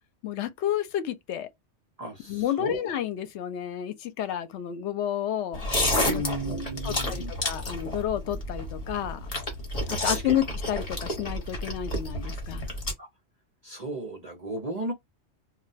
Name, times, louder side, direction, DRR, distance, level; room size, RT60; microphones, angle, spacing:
voice 1, 0.2-1.5 2.3-5.7 6.0-6.2 6.5-9.3 9.9-12.7, left 11 dB, 80° left, 0.9 m, -31 dB
voice 2, 2.0-2.8 6.0-7.3 10.0-10.4 13.0-13.1 13.6-14.9, right 1 dB, 40° right, 0.7 m, -34 dB
sound 1, 5.5-12.9, left 1 dB, 35° left, 1.1 m, -30 dB
2.2 x 2.2 x 3.9 m
omnidirectional pair, 1.2 m